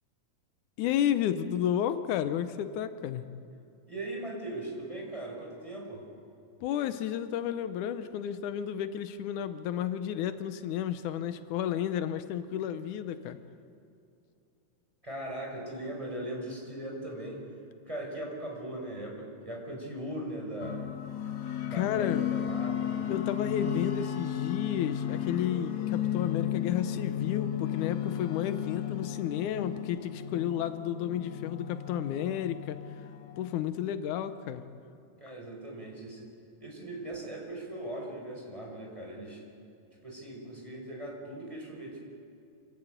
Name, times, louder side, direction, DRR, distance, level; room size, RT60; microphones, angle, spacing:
voice 1, 0.8-3.3 6.6-13.4 21.7-22.2 23.1-32.8 33.4-34.6, left 10 dB, 85° left, 11 dB, 2.3 m, -32 dB
voice 2, 3.9-6.0 15.0-17.4 17.9-20.8 21.6-23.0 35.2-36.3 36.6-39.4 40.0-42.0, right 1 dB, 10° right, -1 dB, 5.0 m, -39 dB
sound 1, 20.6-33.5, left 10 dB, 70° left, 2.6 m, -34 dB
27.5 x 13.0 x 9.1 m, 2.7 s
omnidirectional pair, 3.4 m